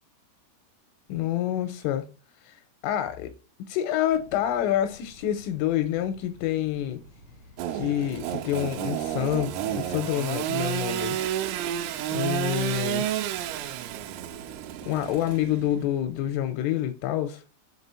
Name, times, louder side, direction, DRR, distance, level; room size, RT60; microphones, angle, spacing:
voice 1, 1.1-2.1 2.4-2.6 2.8-3.3 3.7-7.0 7.7-11.2 12.1-13.1 14.9-17.4, left 12 dB, 85° left, 3.0 m, -27 dB
sound 1, 4.1-16.3, equal, 65° right, 1.6 m, -51 dB
Engine / Sawing, 7.6-15.8, right 11 dB, 85° right, 3.2 m, -31 dB
7.4 x 4.0 x 4.2 m
omnidirectional pair, 6.0 m